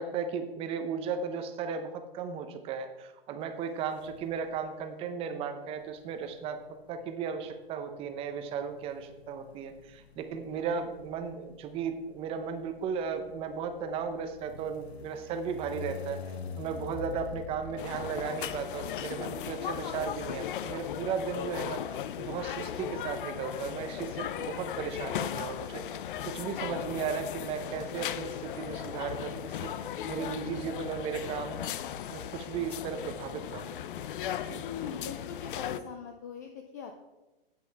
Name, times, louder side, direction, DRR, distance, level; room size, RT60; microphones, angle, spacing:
voice 1, 0.0-6.6 6.9-16.2 16.6-21.8 22.2-25.8 26.2-29.7 30.1-31.6 32.1-33.8 34.4-34.6, right 6 dB, 20° right, 8 dB, 0.7 m, -35 dB
sound 1, 4.0-4.7 5.7-19.4, left 6 dB, 85° left, 0.9 m, -46 dB
sound 2, 17.8-35.8, left 10 dB, 55° left, 0.7 m, -37 dB
voice 2, 34.6-37.0, left 7 dB, 20° left, 4 dB, 0.3 m, -41 dB
9.8 x 8.6 x 4.6 m, 1.1 s
hypercardioid pair, 150°, 31 cm